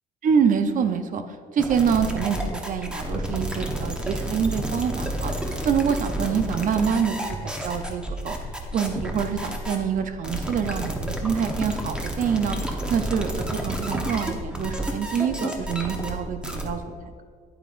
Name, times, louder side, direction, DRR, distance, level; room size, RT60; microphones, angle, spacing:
voice 1, 0.2-1.2 1.5-8.4 8.7-16.9, right 7 dB, 50° right, 8 dB, 0.7 m, -26 dB
sound 1, 1.6-16.7, right 1 dB, 5° right, 1.0 m, -30 dB
9.1 x 8.8 x 2.5 m, 2.2 s
cardioid pair, 110°, 17 cm